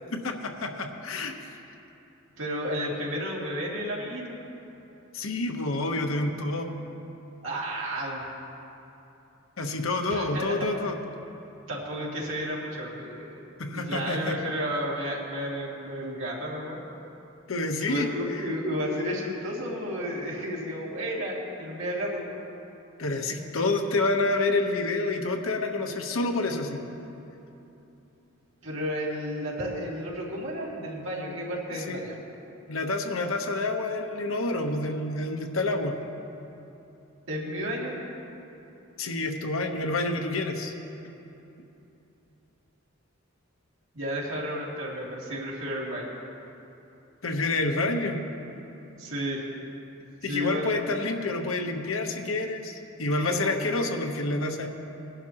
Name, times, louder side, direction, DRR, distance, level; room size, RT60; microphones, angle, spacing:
voice 1, 0.1-1.3 5.1-6.7 9.6-11.0 13.6-14.4 17.5-18.1 23.0-26.8 31.9-32.0 32.7-36.0 39.0-40.7 47.2-48.2 50.2-54.7, left 2 dB, 85° left, 4 dB, 1.0 m, -28 dB
voice 2, 2.4-4.4 7.4-8.3 10.1-10.7 11.7-13.4 13.7-16.8 17.8-22.3 28.6-32.2 37.3-38.0 43.9-46.1 49.0-49.5 50.3-50.8 53.2-53.6, equal, 70° right, -4 dB, 2.5 m, -32 dB
20.0 x 11.0 x 2.9 m, 2.9 s
head